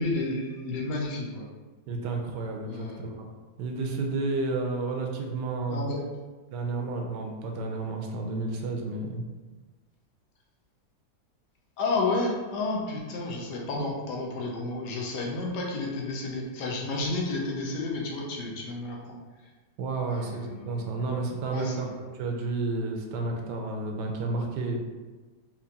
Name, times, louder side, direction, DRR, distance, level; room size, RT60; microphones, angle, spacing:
voice 1, 0.0-1.5 2.7-3.0 5.7-6.0 11.8-19.2 20.1-21.1 21.5-21.9, left 2 dB, 75° left, -1 dB, 1.3 m, -31 dB
voice 2, 1.9-3.3 3.6-5.9 6.5-9.2 19.8-24.9, right 3 dB, 80° right, 2 dB, 1.2 m, -31 dB
4.4 x 2.5 x 2.7 m, 1.3 s
omnidirectional pair, 1.9 m